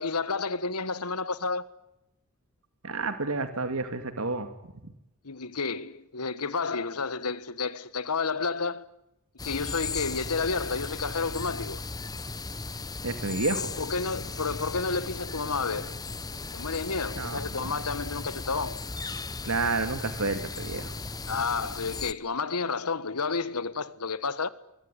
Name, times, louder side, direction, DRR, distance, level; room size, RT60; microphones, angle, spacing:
voice 1, 0.0-1.7 5.2-8.9 9.4-11.8 13.8-16.0 16.5-18.8 21.3-24.5, left 4 dB, 90° left, 1.5 m, -30 dB
voice 2, 2.8-4.5 13.0-13.7 17.2-17.7 19.4-20.9, right 3 dB, 70° right, 2.4 m, -30 dB
sound 1, 9.4-22.1, left 3 dB, 15° left, 0.9 m, -36 dB
24.0 x 23.5 x 9.9 m
head